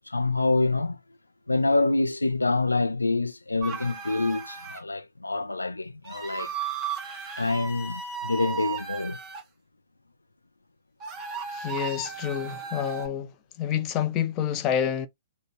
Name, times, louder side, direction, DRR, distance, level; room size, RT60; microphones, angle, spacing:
voice 1, 0.1-1.0 1.5-6.5 7.4-9.2, left 3 dB, 80° left, 0.5 m, -26 dB
sound 1, 3.6-4.8 6.0-9.4 11.0-13.1, right 6 dB, 20° right, 2.0 m, -35 dB
voice 2, 11.5-13.3 13.6-15.1, left 9 dB, 25° left, 0.7 m, -28 dB
5.0 x 2.2 x 4.4 m
figure-of-eight pair, 115°, 0 cm